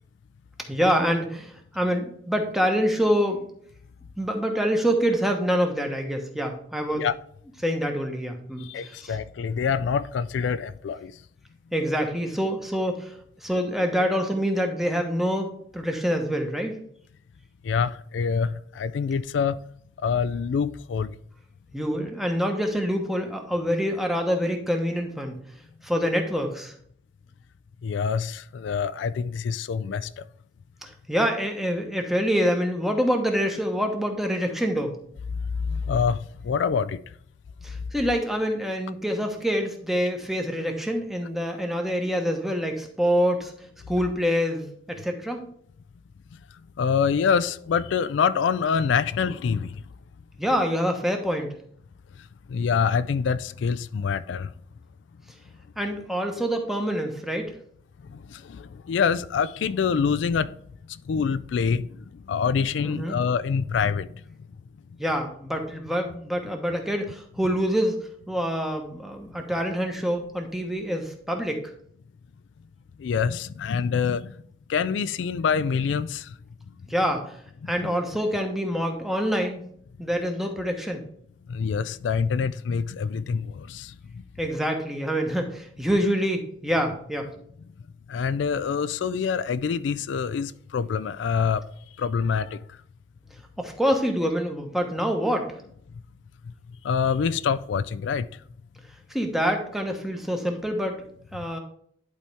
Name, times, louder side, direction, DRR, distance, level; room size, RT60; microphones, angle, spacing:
voice 1, 0.7-3.4 4.2-7.1 7.6-9.2 11.7-15.5 15.7-16.8 21.7-25.3 25.8-26.7 30.8-34.9 37.6-43.5 43.9-45.4 50.4-51.5 55.8-57.5 62.8-63.2 65.0-67.9 68.3-71.6 76.9-77.4 77.7-79.6 80.0-81.0 84.4-87.3 93.6-95.5 99.1-101.0 101.3-101.6, equal, ahead, 1.0 m, -26 dB
voice 2, 8.6-11.1 17.6-19.6 20.0-21.1 27.8-30.2 35.7-37.0 46.8-49.8 52.5-54.5 58.1-60.5 60.9-64.2 73.0-74.3 74.7-76.4 77.6-77.9 81.5-84.2 88.1-91.6 92.0-92.6 96.8-98.3, left 6 dB, 80° left, 0.3 m, -26 dB
11.0 x 4.3 x 3.5 m
head